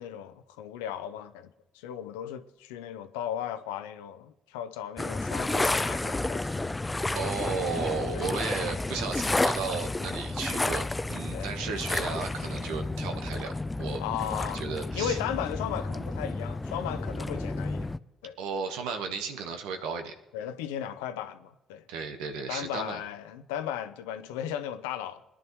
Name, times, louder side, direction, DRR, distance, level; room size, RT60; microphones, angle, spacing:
voice 1, 0.0-6.6 8.1-8.3 11.3-11.5 14.0-14.6 14.9-17.9 18.2-18.4 20.3-21.8 22.5-25.2, left 10 dB, 90° left, 0.7 m, -36 dB
sound 1, 5.0-18.0, left 2 dB, 20° left, 0.5 m, -31 dB
voice 2, 7.1-13.5 13.8-14.0 14.5-15.2 18.4-20.1 21.9-23.0, right 5 dB, 80° right, 1.2 m, -34 dB
21.0 x 10.5 x 3.1 m
hypercardioid pair, 55°, 0 cm